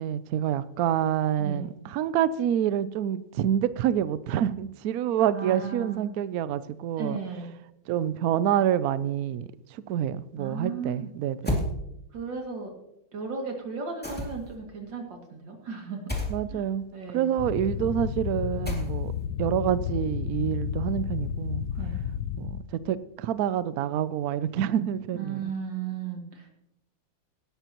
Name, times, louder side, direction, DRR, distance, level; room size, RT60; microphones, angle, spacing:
voice 1, 0.0-7.2 7.9-11.6 16.3-16.8 17.1-19.1 19.4-21.7 22.4-25.4, right 10 dB, 85° right, 0.8 m, -27 dB
voice 2, 5.3-6.1 7.0-7.5 10.4-11.1 12.1-12.7 13.1-16.1 16.5-16.6 16.9-17.3 21.8-22.0 25.1-26.5, right 5 dB, 65° right, 3.0 m, -35 dB
sound 1, 11.4-11.7 14.0-14.6 16.1-16.4 18.6-19.2, left 1 dB, 5° left, 2.2 m, -30 dB
sound 2, 17.4-22.6, left 9 dB, 70° left, 1.1 m, -32 dB
18.0 x 11.5 x 3.0 m
omnidirectional pair, 2.2 m